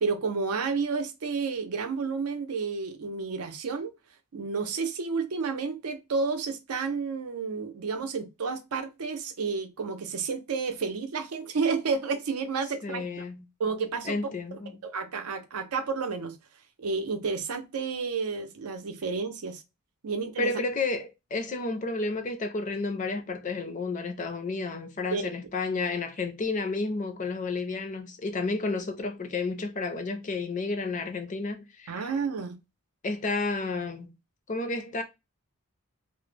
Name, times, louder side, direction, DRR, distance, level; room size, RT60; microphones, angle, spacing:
voice 1, 0.0-3.9 4.3-13.0 13.6-14.2 14.8-16.3 16.8-19.6 20.0-20.5 25.1-25.3 31.9-32.6, right 4 dB, 85° right, 0.5 m, -31 dB
voice 2, 12.8-13.4 14.0-14.7 20.4-32.1 33.0-34.1 34.5-35.0, left 3 dB, 35° left, 0.4 m, -31 dB
2.1 x 2.0 x 3.1 m
head